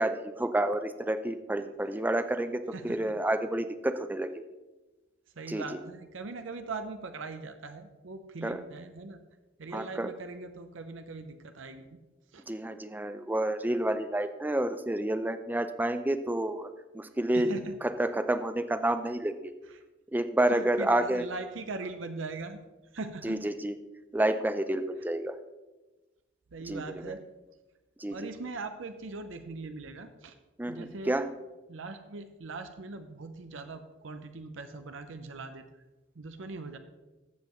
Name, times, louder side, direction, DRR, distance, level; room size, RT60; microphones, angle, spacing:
voice 1, 0.0-4.3 5.5-5.6 8.4-8.6 9.7-10.1 12.5-16.7 16.9-17.5 17.8-19.5 20.1-21.2 23.2-23.7 24.1-25.3 26.7-27.1 28.0-28.3 30.6-31.3, right 1 dB, 10° right, 10 dB, 0.4 m, -29 dB
voice 2, 5.4-9.2 9.6-12.0 12.3-12.4 17.3-17.8 19.6-19.8 20.5-22.6 22.9-23.5 26.5-27.2 28.1-30.4 30.7-31.2 31.7-35.6 36.2-36.8, right 3 dB, 70° right, 8 dB, 0.7 m, -40 dB
14.0 x 7.6 x 3.1 m, 1.1 s
head